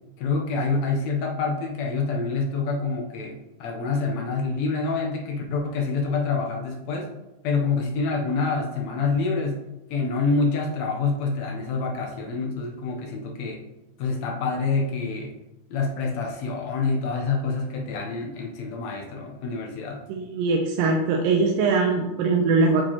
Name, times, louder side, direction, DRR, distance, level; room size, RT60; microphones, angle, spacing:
voice 1, 0.2-7.1 7.4-9.7 9.9-13.7 14.0-15.3 15.7-20.0, left 4 dB, 75° left, 1 dB, 1.6 m, -27 dB
voice 2, 20.1-22.8, right 4 dB, 90° right, 1 dB, 2.3 m, -21 dB
8.8 x 4.5 x 2.9 m, 0.97 s
omnidirectional pair, 3.9 m